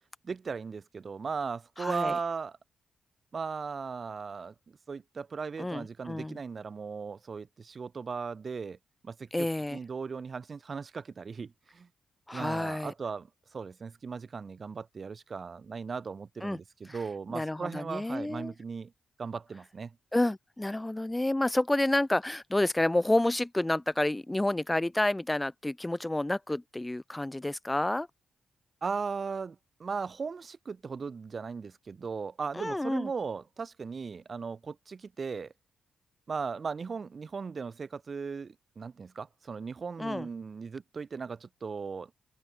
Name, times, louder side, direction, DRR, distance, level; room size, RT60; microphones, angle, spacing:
voice 1, 0.2-2.6 3.3-8.8 9.0-11.9 12.3-18.9 19.2-20.0 28.8-35.5 36.3-42.1, right 5 dB, 45° right, 4.4 m, -37 dB
voice 2, 1.8-2.2 5.6-6.4 9.3-9.8 12.3-12.9 16.4-16.6 16.9-17.0 17.3-18.5 20.1-28.1 32.5-33.1 40.0-40.3, left 1 dB, 15° left, 0.8 m, -29 dB
open air
cardioid pair, 80°, 0 cm